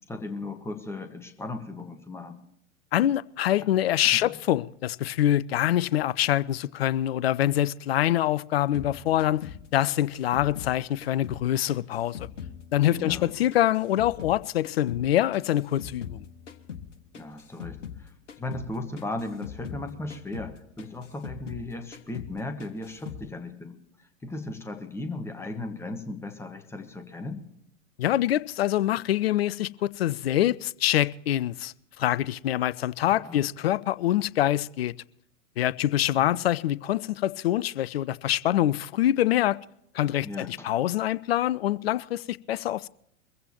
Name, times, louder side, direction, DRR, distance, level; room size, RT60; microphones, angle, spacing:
voice 1, 0.1-2.4 3.6-3.7 4.2-4.4 12.9-13.5 17.1-27.4 33.1-33.4 40.2-40.7, left 2 dB, 5° left, 1.4 m, -37 dB
voice 2, 2.9-12.3 12.7-16.3 28.0-34.9 35.6-39.6 39.9-42.9, left 12 dB, 50° left, 0.5 m, -25 dB
sound 1, 8.7-11.4 11.7-14.4 14.6-18.0 18.3-18.7 19.0-21.7 21.9-22.3 22.6-23.3, left 8 dB, 65° left, 1.3 m, -41 dB
22.5 x 15.5 x 2.9 m
figure-of-eight pair, 95°, 39 cm